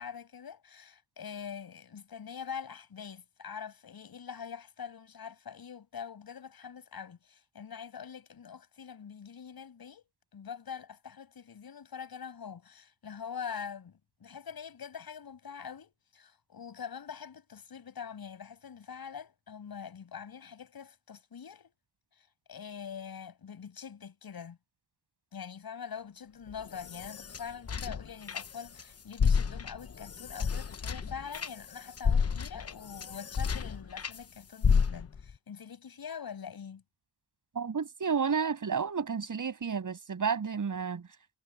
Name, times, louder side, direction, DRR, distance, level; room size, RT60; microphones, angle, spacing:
voice 1, 0.0-10.0 10.3-21.7 22.2-24.6 25.3-36.8, left 7 dB, 55° left, 7.7 m, -44 dB
sound 1, 26.5-28.8 29.1-34.2 34.6-35.3, left 6 dB, 35° left, 1.1 m, -31 dB
voice 2, 37.5-41.0, right 6 dB, 45° right, 7.4 m, -31 dB
wide cardioid pair, 140°, 43 cm